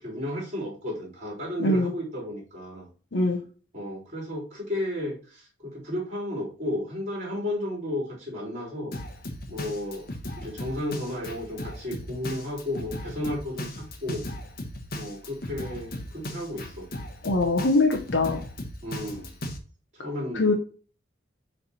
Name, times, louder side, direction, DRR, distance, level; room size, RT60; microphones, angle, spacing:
voice 1, 0.0-2.9 3.7-8.9 9.5-10.1 10.4-14.2 15.0-16.9 18.8-19.3 19.9-20.6, left 1 dB, 40° right, -3 dB, 3.5 m, -33 dB
voice 2, 1.6-1.9 3.1-3.4 17.2-18.4 20.3-20.5, left 2 dB, 80° left, 1 dB, 0.9 m, -22 dB
Drum kit, 8.9-19.6, left 1 dB, 55° left, 1.1 m, -37 dB
6.9 x 3.4 x 4.2 m, 0.38 s
head